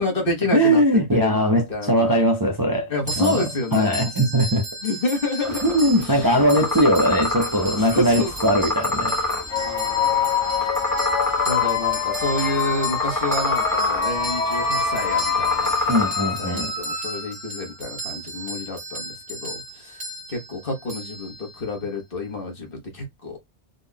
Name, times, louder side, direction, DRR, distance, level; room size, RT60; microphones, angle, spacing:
voice 1, 0.0-0.8 1.1-2.2 2.9-4.1 4.8-6.3 7.8-8.5 9.5-10.3 11.4-15.7 16.2-20.0 20.3-23.4, left 2 dB, 50° left, 1.5 m, -29 dB
voice 2, 0.5-2.9 3.2-3.4 3.7-4.6 5.6-9.3 15.9-16.7, equal, 25° right, 0.6 m, -20 dB
sound 1, 3.1-21.8, equal, 5° right, 2.0 m, -35 dB
sound 2, 5.4-16.0, left 1 dB, 15° left, 1.3 m, -28 dB
sound 3, 9.5-17.6, left 6 dB, 80° left, 1.3 m, -25 dB
3.8 x 3.5 x 2.2 m
omnidirectional pair, 1.2 m